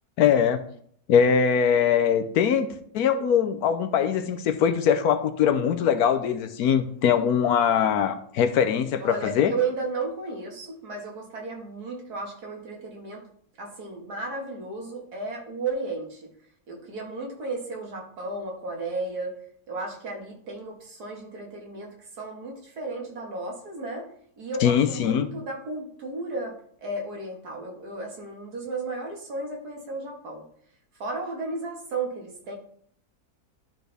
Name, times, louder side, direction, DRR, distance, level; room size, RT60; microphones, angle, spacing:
voice 1, 0.2-0.6 1.1-2.7 2.9-9.5 24.6-25.3, left 8 dB, 75° left, 9 dB, 1.1 m, -22 dB
voice 2, 9.0-13.2 13.6-16.3 16.7-19.3 19.7-24.1 24.4-30.4 30.9-32.5, right 3 dB, 75° right, 0 dB, 2.2 m, -34 dB
12.0 x 4.4 x 3.4 m, 0.62 s
omnidirectional pair, 1.7 m